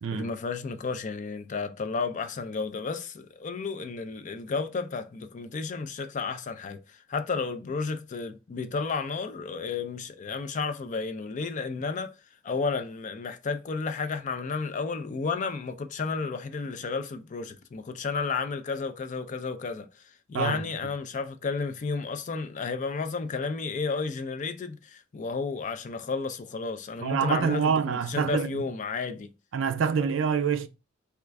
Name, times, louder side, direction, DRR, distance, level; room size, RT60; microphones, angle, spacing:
voice 1, 0.1-12.2 12.4-20.0 20.3-29.3, left 4 dB, 40° left, 0.4 m, -32 dB
voice 2, 20.3-20.7 27.0-28.5 29.5-30.7, right 6 dB, 65° right, 0.4 m, -26 dB
3.5 x 2.4 x 3.2 m
head